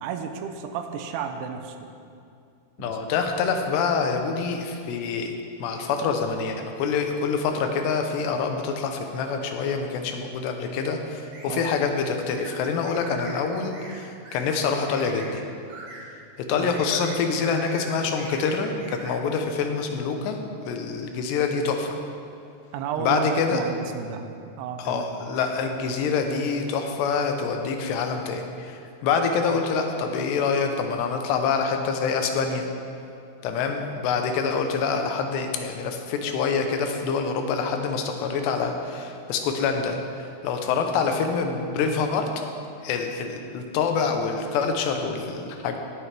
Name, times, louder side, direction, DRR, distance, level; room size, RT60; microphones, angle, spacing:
voice 1, 0.0-1.8 2.8-3.0 11.5-11.7 16.5-16.8 22.7-24.3 24.6-25.2, right 7 dB, 90° right, 7 dB, 2.8 m, -32 dB
voice 2, 2.8-5.3 5.6-15.5 16.5-20.4 20.7-22.0 23.0-23.6 24.8-32.7 33.4-42.3 42.8-45.8, left 5 dB, 90° left, 4 dB, 3.1 m, -26 dB
sound 1, 11.3-11.5 12.4-12.5 12.9-13.4 13.7-14.0 14.2-14.6 14.9-15.3 15.7-16.0 16.6-17.2 17.4-17.9 18.2-19.1, right 2 dB, 55° right, 3.1 m, -42 dB
17.0 x 9.5 x 3.4 m, 2.6 s
omnidirectional pair, 4.8 m